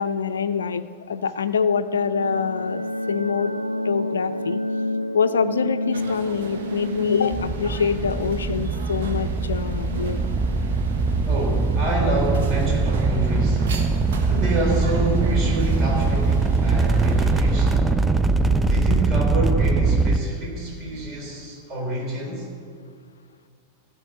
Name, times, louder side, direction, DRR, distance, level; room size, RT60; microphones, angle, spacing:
voice 1, 0.0-2.8 3.1-3.5 3.8-4.6 5.1-10.2, left 6 dB, 70° left, 10 dB, 0.4 m, -25 dB
sound 1, 1.6-10.1, left 1 dB, 85° right, 0.4 m, -30 dB
sound 2, 5.9-17.8, right 6 dB, 55° right, 1.2 m, -36 dB
sound 3, 7.3-20.2, right 3 dB, 10° right, 0.5 m, -22 dB
voice 2, 11.2-13.7 14.3-18.0 18.6-22.5, right 1 dB, 35° right, -1 dB, 3.4 m, -28 dB
14.0 x 5.8 x 8.1 m, 2.2 s
figure-of-eight pair, 90°, 0 cm